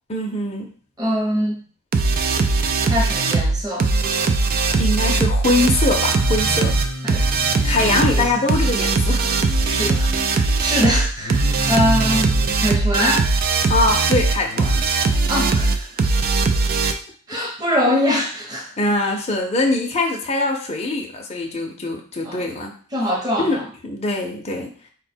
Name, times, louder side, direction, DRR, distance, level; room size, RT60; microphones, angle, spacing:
voice 1, 0.1-0.7 4.8-6.8 7.6-9.4 13.7-14.8 18.8-22.7 23.4-24.7, left 2 dB, 30° left, 0 dB, 0.6 m, -22 dB
voice 2, 1.0-1.6 2.9-3.9 7.0-7.3 8.1-8.3 9.6-13.3 15.3-16.0 17.3-18.7 22.2-22.5 22.9-23.6, equal, 15° right, -2 dB, 0.9 m, -23 dB
sound 1, 1.9-16.9, right 3 dB, 40° right, 0.3 m, -20 dB
Singing, 6.0-8.5 9.1-10.3 11.2-12.5 14.5-14.8, equal, 70° left, 0.7 m, -31 dB
4.3 x 2.2 x 4.3 m, 0.42 s
head